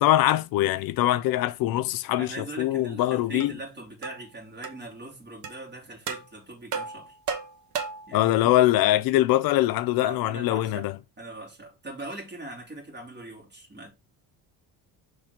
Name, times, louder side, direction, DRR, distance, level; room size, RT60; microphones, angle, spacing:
voice 1, 0.0-3.5 8.1-10.9, left 14 dB, 65° left, 0.5 m, -23 dB
voice 2, 2.2-7.2 8.1-8.5 10.0-13.9, right 1 dB, 30° right, 2.7 m, -41 dB
sound 1, 3.4-3.5 4.0-4.2 4.6-4.8 5.4-5.6 6.1-6.3 6.7-8.1, right 6 dB, 50° right, 1.1 m, -33 dB
5.7 x 3.4 x 5.1 m
cardioid pair, 165°, 38 cm